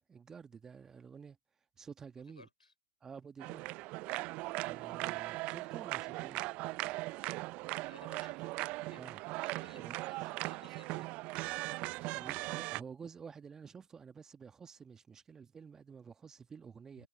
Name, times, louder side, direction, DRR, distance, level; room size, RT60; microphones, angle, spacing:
voice 1, 0.1-1.4 1.8-2.5 3.0-3.9 4.6-6.5 8.9-9.2 9.7-10.0 12.1-17.1, right 6 dB, 15° right, 1.4 m, -51 dB
voice 2, 2.4-2.7 5.5-5.6 7.8-8.4 8.8-9.3 9.6-11.1 11.6-12.3 17.0-17.1, left 3 dB, 90° left, 3.6 m, -60 dB
sound 1, 3.4-12.8, right 22 dB, 30° right, 0.4 m, -39 dB
figure-of-eight pair, 115°, 4 cm